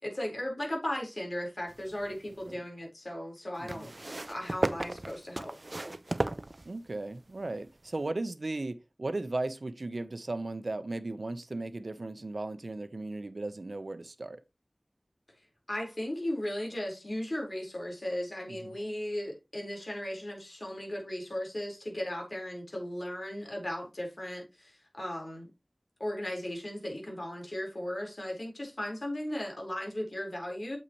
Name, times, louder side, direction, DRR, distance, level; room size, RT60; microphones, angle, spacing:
voice 1, 0.0-3.9 4.3-5.6 15.7-25.5 26.0-30.8, left 1 dB, 60° left, 4.4 m, -36 dB
sound 1, 1.7-2.5 3.7-7.1 8.0-8.1, right 2 dB, 55° right, 0.6 m, -35 dB
voice 2, 3.6-3.9 6.6-14.4 18.5-18.7, right 2 dB, 75° right, 0.9 m, -36 dB
8.6 x 6.8 x 3.1 m
wide cardioid pair, 45°, 0 cm